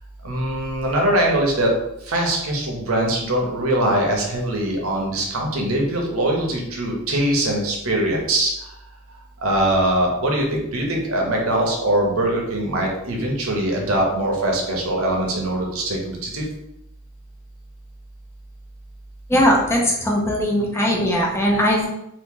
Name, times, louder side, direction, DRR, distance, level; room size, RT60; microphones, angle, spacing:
voice 1, 0.2-1.7 2.1-8.5 9.4-16.4, right 1 dB, 85° right, 0 dB, 0.9 m, -22 dB
voice 2, 19.3-21.9, equal, 10° left, -2 dB, 0.6 m, -19 dB
2.9 x 2.7 x 3.6 m, 0.82 s
head